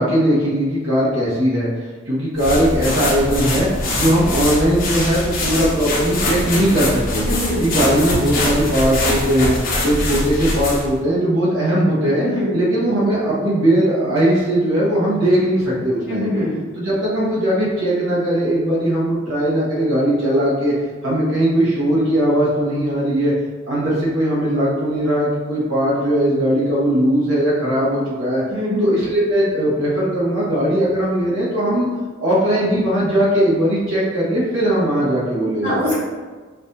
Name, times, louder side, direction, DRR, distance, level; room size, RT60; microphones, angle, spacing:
voice 1, 0.0-1.7 2.1-3.7 3.9-7.3 7.6-9.5 9.8-12.2 12.5-16.3 16.7-20.7 21.0-23.3 23.7-28.4 28.8-31.9 32.2-35.8, right 1 dB, 80° right, -7 dB, 1.2 m, -19 dB
sound 1, 2.4-10.9, left 1 dB, 45° left, 1.0 m, -23 dB
voice 2, 7.3-7.6 12.2-12.5 16.1-16.5 28.5-28.8 35.6-36.0, left 1 dB, 55° right, -8 dB, 1.3 m, -22 dB
5.5 x 2.6 x 2.7 m, 1.4 s
head